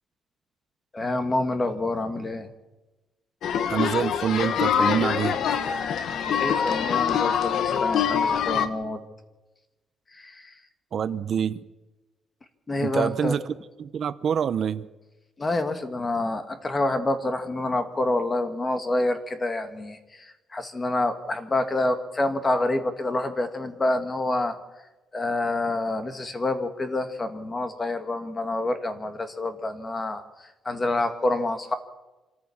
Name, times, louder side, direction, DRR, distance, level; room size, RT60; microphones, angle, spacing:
voice 1, 0.9-2.5 6.4-9.0 10.1-10.5 12.7-13.4 15.4-24.6 25.1-31.8, left 2 dB, 20° left, 8 dB, 1.9 m, -27 dB
sound 1, 3.4-8.7, left 8 dB, 70° left, 1.2 m, -24 dB
voice 2, 3.7-5.4 10.9-11.6 12.8-13.5 13.8-14.9, right 8 dB, 50° right, 13 dB, 0.8 m, -26 dB
26.0 x 14.0 x 7.2 m, 1.1 s
cardioid pair, 135°, 0 cm